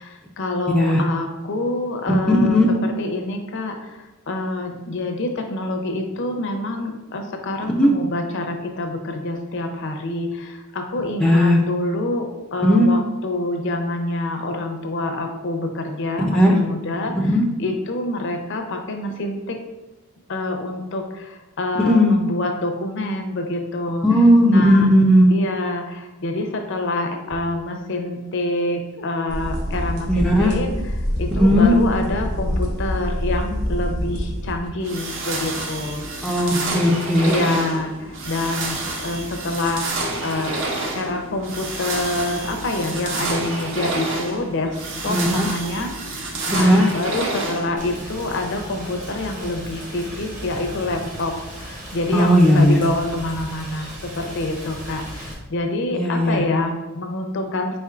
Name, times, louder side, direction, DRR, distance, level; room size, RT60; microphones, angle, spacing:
voice 1, 0.0-19.6 20.3-24.1 24.5-24.9 25.3-36.3 36.7-36.8 37.2-39.9 40.2-40.6 40.9-57.8, left 2 dB, 55° left, 4 dB, 0.5 m, -27 dB
voice 2, 2.3-2.7 7.8-7.9 11.2-11.6 12.6-12.9 16.3-16.6 17.2-17.5 21.8-22.2 24.0-25.3 30.1-30.5 31.3-31.7 36.2-37.6 45.1-45.5 46.6-46.9 52.1-52.8 55.9-56.4, equal, 5° left, -2 dB, 0.3 m, -16 dB
sound 1, 29.3-34.7, equal, 90° right, 1.3 m, -26 dB
sound 2, 34.8-48.0, right 2 dB, 55° right, 0.6 m, -29 dB
Rain, 47.8-55.3, equal, 35° right, 1.0 m, -36 dB
4.3 x 4.3 x 2.4 m, 1.1 s
head